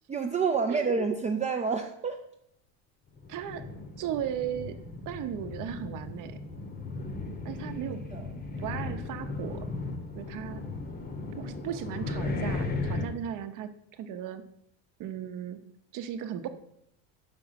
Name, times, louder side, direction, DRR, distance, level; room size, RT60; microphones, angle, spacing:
voice 1, 0.1-2.2 7.9-8.3, right 5 dB, 20° right, 4 dB, 0.5 m, -29 dB
sound 1, 3.2-13.1, left 3 dB, 25° left, 0.9 m, -36 dB
voice 2, 3.3-3.6 4.0-4.7 5.1-6.4 7.4-8.0 8.6-9.7 10.2-10.6 11.4-14.4 15.0-15.6 15.9-16.5, right 9 dB, 50° right, 10 dB, 0.8 m, -36 dB
5.7 x 5.3 x 5.7 m, 0.78 s
supercardioid pair, 110°, 39 cm